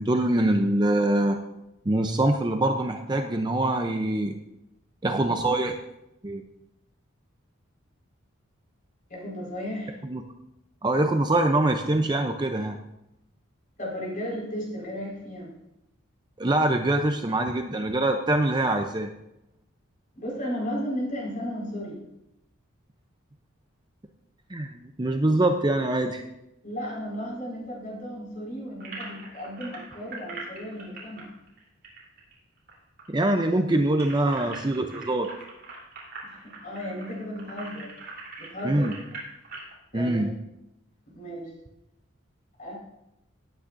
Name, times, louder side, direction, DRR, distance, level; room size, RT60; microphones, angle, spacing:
voice 1, 0.0-1.4 1.9-4.4 5.0-5.7 6.2-6.4 10.0-10.2 10.8-12.8 16.4-19.1 24.5-26.2 33.1-35.3 38.6-38.9 39.9-40.3, right 1 dB, 20° right, 5 dB, 0.5 m, -24 dB
voice 2, 9.1-10.0 13.8-15.5 20.1-22.0 26.6-31.3 36.2-37.9 38.4-38.9 39.9-40.3 41.1-41.5 42.6-42.7, equal, 40° left, -4 dB, 4.7 m, -34 dB
sound 1, 28.8-32.7 33.0-33.1 33.4-39.7, right 3 dB, 45° right, 3.5 m, -42 dB
18.0 x 8.7 x 2.6 m, 0.85 s
head